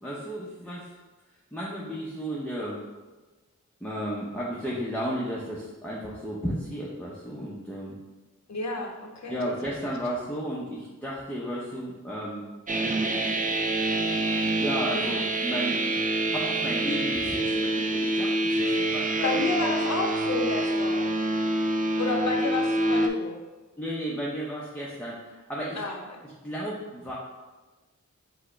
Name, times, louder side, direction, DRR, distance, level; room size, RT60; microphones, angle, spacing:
voice 1, 0.0-0.9 1.5-2.8 3.8-8.0 9.3-12.4 14.4-19.7 23.8-25.8 26.2-27.1, equal, 5° left, -5 dB, 0.7 m, -34 dB
voice 2, 8.5-9.4 14.9-15.2 19.2-21.2 22.0-23.4 25.8-26.0, left 3 dB, 60° left, 2 dB, 0.7 m, -31 dB
sound 1, 12.7-23.1, right 1 dB, 25° right, 0.4 m, -26 dB
4.8 x 2.1 x 4.3 m, 1.2 s
wide cardioid pair, 60°, 31 cm